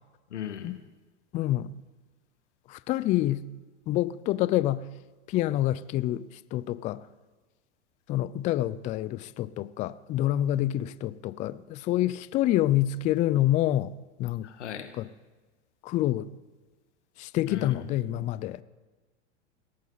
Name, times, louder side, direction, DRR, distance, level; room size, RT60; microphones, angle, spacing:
voice 1, 0.3-0.7 14.4-14.9 17.5-17.8, left 9 dB, 85° left, 1.6 m, -37 dB
voice 2, 1.3-1.7 2.7-3.5 3.9-4.9 5.3-7.1 8.1-13.9 14.2-14.5 15.0-15.1 15.8-16.3 17.2-18.6, left 14 dB, 25° left, 0.3 m, -27 dB
17.5 x 14.0 x 3.9 m
hypercardioid pair, 110°, 35 cm